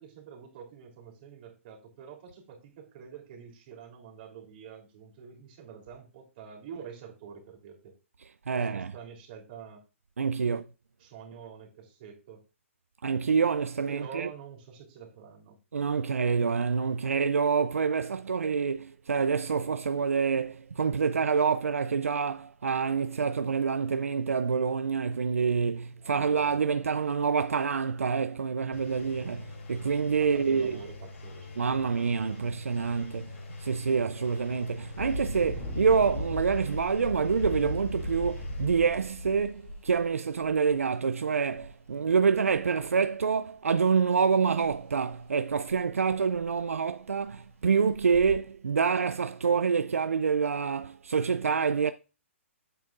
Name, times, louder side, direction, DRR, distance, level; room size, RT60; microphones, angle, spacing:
voice 1, 0.0-7.9 8.5-9.8 10.4-10.6 11.0-12.4 13.9-15.5 25.9-26.5 30.3-31.7, right 7 dB, 40° right, 3.1 m, -46 dB
voice 2, 8.5-8.9 10.2-10.6 13.0-14.3 15.7-30.8 31.6-51.9, right 5 dB, 85° right, 0.4 m, -27 dB
Engine, 28.7-38.7, left 3 dB, 65° left, 4.2 m, -44 dB
Engine 2, 32.8-33.0 33.5-33.7 34.9-40.7 41.6-41.7 42.1-42.8 44.6-44.8 45.1-45.2 45.7-45.8 46.1-46.6 47.2-47.3 47.9-48.3, left 1 dB, 15° left, 2.7 m, -37 dB
9.3 x 7.9 x 2.4 m
hypercardioid pair, 135°, 7 cm